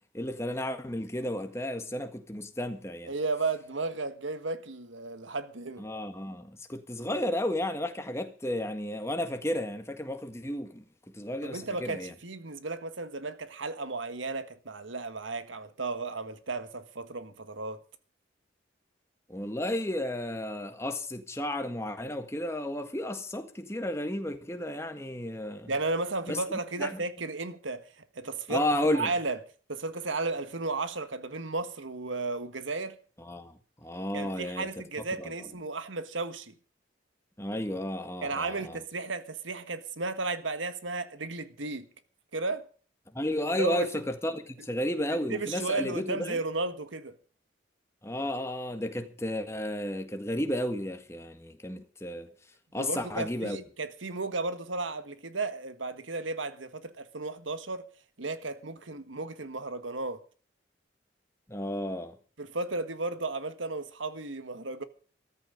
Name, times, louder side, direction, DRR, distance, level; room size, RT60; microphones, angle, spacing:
voice 1, 0.1-3.1 5.8-10.8 11.1-12.1 19.3-25.7 26.3-26.4 26.8-27.0 28.5-29.1 33.2-34.7 35.2-35.3 37.4-38.8 43.1-46.4 48.0-52.3 52.7-53.6 61.5-62.2, left 1 dB, 15° left, 1.6 m, -33 dB
voice 2, 3.1-5.8 11.4-17.8 25.7-28.6 28.9-29.4 29.7-33.0 34.1-36.6 38.2-41.9 42.3-42.6 43.5-44.0 45.1-47.1 52.8-57.8 58.2-60.2 62.4-64.8, right 3 dB, 85° right, 1.6 m, -34 dB
14.0 x 14.0 x 5.2 m
head